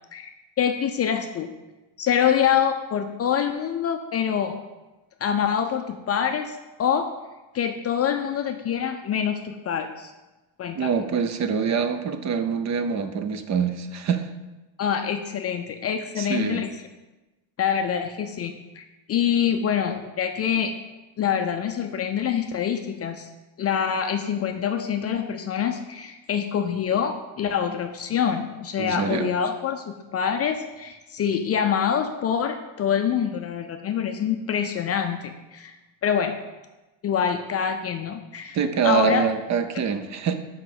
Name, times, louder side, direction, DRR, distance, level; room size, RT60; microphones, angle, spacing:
voice 1, 0.1-1.5 2.0-4.6 5.2-7.1 7.5-10.1 10.6-10.9 14.8-16.7 17.6-20.7 21.2-23.3 23.6-35.8 36.0-36.3 37.0-38.6 38.8-39.2, left 8 dB, 35° left, 6 dB, 0.4 m, -25 dB
voice 2, 10.7-14.3 16.2-16.6 28.8-29.3 38.5-40.4, right 6 dB, 40° right, 9 dB, 0.5 m, -25 dB
5.5 x 5.0 x 6.0 m, 1.1 s
cardioid pair, 140°, 46 cm